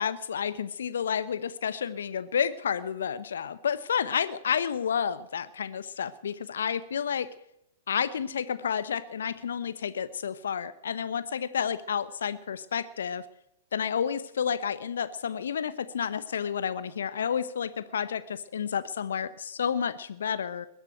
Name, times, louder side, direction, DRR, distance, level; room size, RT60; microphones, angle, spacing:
voice 1, 0.0-7.3 7.9-13.2 13.7-20.7, left 7 dB, 65° left, 14 dB, 1.0 m, -30 dB
21.0 x 7.4 x 9.1 m, 0.76 s
figure-of-eight pair, 105°, 0 cm